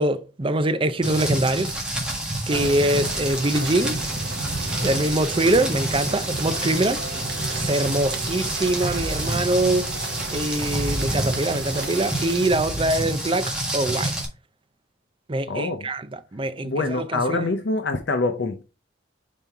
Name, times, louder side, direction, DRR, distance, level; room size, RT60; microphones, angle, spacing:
voice 1, 0.0-1.7 2.5-4.0 4.8-7.0 7.5-9.9 10.3-14.1 15.3-17.5, right 1 dB, 25° right, 0.5 m, -24 dB
Rain, 1.0-14.2, right 1 dB, 5° right, 1.5 m, -28 dB
sound 1, 2.5-12.5, right 4 dB, 60° right, 1.0 m, -36 dB
voice 2, 15.5-15.9 16.6-18.6, left 3 dB, 65° left, 0.7 m, -25 dB
5.3 x 4.3 x 4.7 m
head